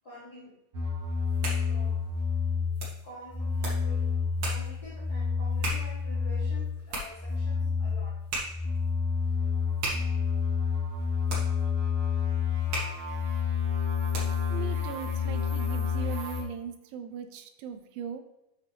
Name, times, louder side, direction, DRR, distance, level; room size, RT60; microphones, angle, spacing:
voice 1, 0.0-0.6 1.6-2.2 3.0-4.1 4.4-8.3, left 1 dB, 85° left, -7 dB, 0.8 m, -48 dB
sound 1, 0.7-2.9 3.3-6.8 7.1-16.4, left 6 dB, 60° right, 1.4 m, -29 dB
sound 2, 1.1-14.6, right 2 dB, 45° right, 2.5 m, -40 dB
voice 2, 14.5-18.2, right 7 dB, 80° right, 8 dB, 2.4 m, -39 dB
8.0 x 5.8 x 3.4 m, 0.87 s
omnidirectional pair, 4.3 m